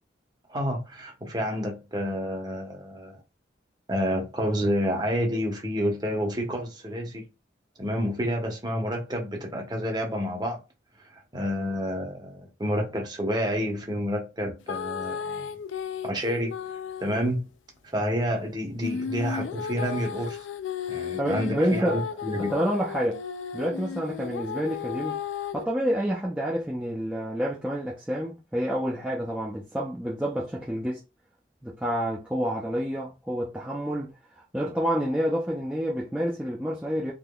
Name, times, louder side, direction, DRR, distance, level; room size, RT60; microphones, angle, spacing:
voice 1, 0.5-3.2 3.9-7.3 7.8-10.6 11.1-15.5 16.0-16.5 17.0-17.5 17.9-20.5 20.9-22.5, equal, 20° right, 0.9 m, -29 dB
sound 1, 14.7-17.3 18.8-25.7, left 7 dB, 80° left, 0.3 m, -34 dB
voice 2, 21.2-22.0 22.4-23.2 23.5-25.2 25.5-31.0 31.6-37.1, equal, 5° right, 0.5 m, -28 dB
3.7 x 2.9 x 2.3 m
head